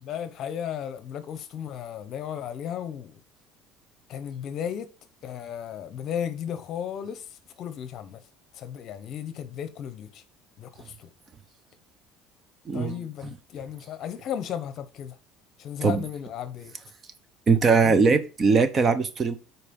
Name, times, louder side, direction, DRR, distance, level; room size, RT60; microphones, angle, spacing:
voice 1, 0.0-3.2 4.1-4.9 5.2-7.2 7.6-8.2 8.5-10.2 10.6-11.1 12.7-15.2 15.6-16.7 17.8-18.2, left 9 dB, 45° left, 1.1 m, -35 dB
voice 2, 12.7-13.0 15.8-16.0 17.5-19.4, right 4 dB, 30° right, 0.9 m, -21 dB
8.3 x 4.6 x 5.4 m
cardioid pair, 140°, 0 cm